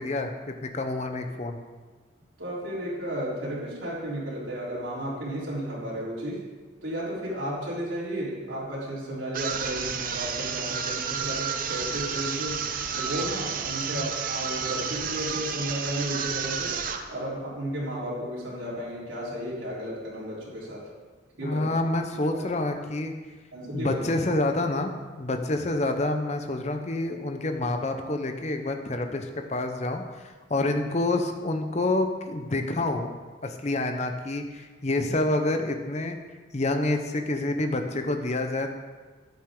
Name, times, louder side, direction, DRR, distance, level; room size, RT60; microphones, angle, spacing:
voice 1, 0.0-1.6 13.9-14.1 21.4-23.1 23.7-24.9 25.2-33.1 33.4-36.2 36.5-38.7, left 2 dB, 35° left, 6 dB, 0.8 m, -28 dB
voice 2, 2.4-6.4 6.8-12.6 13.0-16.7 17.1-20.8 21.4-21.6 22.3-22.4 23.5-24.0, equal, 90° right, -7 dB, 3.8 m, -33 dB
sound 1, 9.3-17.1, right 7 dB, 45° right, 0.7 m, -31 dB
11.5 x 9.3 x 3.8 m, 1.4 s
head